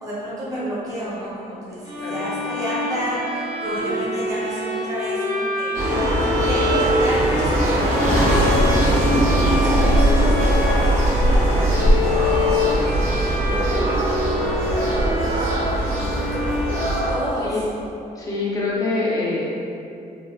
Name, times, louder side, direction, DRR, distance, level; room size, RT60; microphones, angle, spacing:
voice 1, 0.0-5.7 6.5-9.1 9.5-10.6 11.2-11.9 12.2-13.8 14.3-15.5 15.8-16.4 17.1-17.6, equal, 20° right, -9 dB, 0.6 m, -31 dB
sound 1, 1.8-17.5, left 2 dB, 90° right, 0.9 m, -27 dB
sound 2, 5.7-17.1, right 1 dB, 55° right, 0.8 m, -20 dB
voice 2, 18.2-19.5, left 3 dB, 20° left, -6 dB, 0.4 m, -24 dB
3.0 x 2.1 x 2.2 m, 2.7 s
cardioid pair, 165°, 16 cm